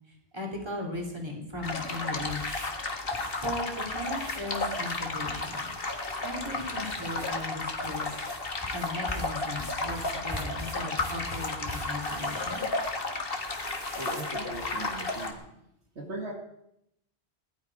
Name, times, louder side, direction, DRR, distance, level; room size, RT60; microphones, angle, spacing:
voice 1, 0.1-2.7 3.4-5.7 6.2-8.1 8.7-12.6, left 1 dB, 25° right, -1 dB, 3.6 m, -37 dB
sound 1, 1.6-15.3, left 3 dB, 60° left, 1.9 m, -33 dB
sound 2, 1.7-15.4, equal, 10° right, 4.1 m, -44 dB
voice 2, 14.0-15.4 16.0-16.4, right 1 dB, 80° right, 1 dB, 2.3 m, -38 dB
18.5 x 11.5 x 5.0 m, 0.80 s
omnidirectional pair, 1.1 m